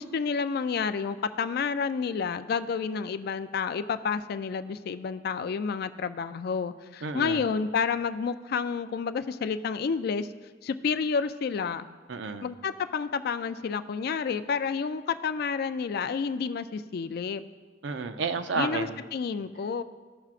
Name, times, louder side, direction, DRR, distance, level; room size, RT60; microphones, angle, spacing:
voice 1, 0.0-10.3 10.6-11.9 12.4-17.4 18.6-19.8, left 5 dB, 55° left, 11 dB, 0.3 m, -30 dB
voice 2, 7.0-7.4 12.1-12.5 17.8-19.0, right 4 dB, 70° right, 9 dB, 0.5 m, -31 dB
15.0 x 5.9 x 2.5 m, 1.4 s
head